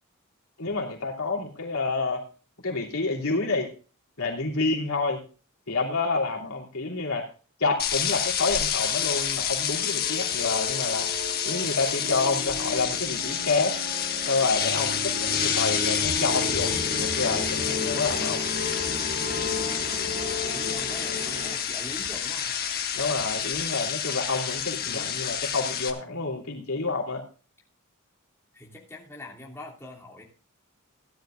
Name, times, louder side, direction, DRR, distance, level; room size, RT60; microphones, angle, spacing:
voice 1, 0.6-2.2 2.6-3.7 4.2-5.2 5.7-7.3 7.6-11.1 11.4-13.7 14.3-18.4 22.9-27.2, left 3 dB, 75° left, 0 dB, 3.3 m, -28 dB
sound 1, 7.8-25.9, left 8 dB, 45° left, 1.5 m, -29 dB
sound 2, 9.0-21.5, left 2 dB, 50° right, 3.2 m, -35 dB
sound 3, 16.0-23.2, right 1 dB, 80° right, 7.7 m, -51 dB
voice 2, 20.3-22.6 24.8-25.2 28.5-30.2, left 1 dB, 10° left, -4 dB, 3.0 m, -43 dB
17.0 x 12.0 x 2.6 m, 0.37 s
head